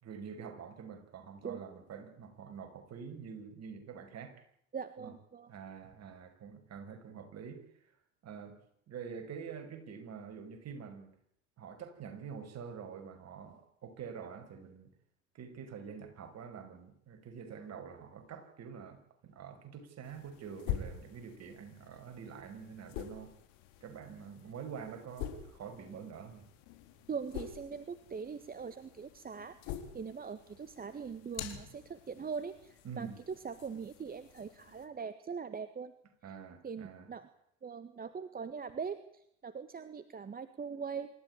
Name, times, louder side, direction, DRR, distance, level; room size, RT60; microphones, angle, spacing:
voice 1, 0.0-4.4 5.0-5.1 5.5-7.6 8.2-8.6 8.9-11.1 11.6-14.9 15.3-23.4 23.8-26.5 32.8-33.2 36.2-37.1, right 6 dB, 40° right, 6 dB, 6.1 m, -46 dB
voice 2, 4.7-5.5 27.1-35.9 36.6-37.3 37.6-41.1, right 6 dB, 20° right, 12 dB, 1.6 m, -42 dB
sound 1, 20.0-34.9, left 10 dB, 55° left, 4.2 m, -46 dB
27.0 x 14.0 x 10.0 m, 0.73 s
hypercardioid pair, 75°, 39 cm